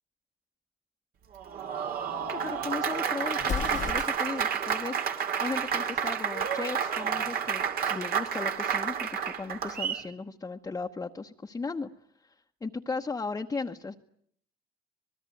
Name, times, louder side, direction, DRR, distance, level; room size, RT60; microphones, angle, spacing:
Applause, 1.3-10.1, right 7 dB, 65° right, 2.6 m, -30 dB
voice 1, 2.3-5.0 5.4-11.9 12.2-12.3 12.6-13.9, left 4 dB, 20° left, 2 dB, 1.0 m, -36 dB
Explosion, 3.4-4.5, left 8 dB, 50° left, 1.2 m, -34 dB
26.0 x 20.5 x 9.2 m, 0.66 s
cardioid pair, 110°, 17 cm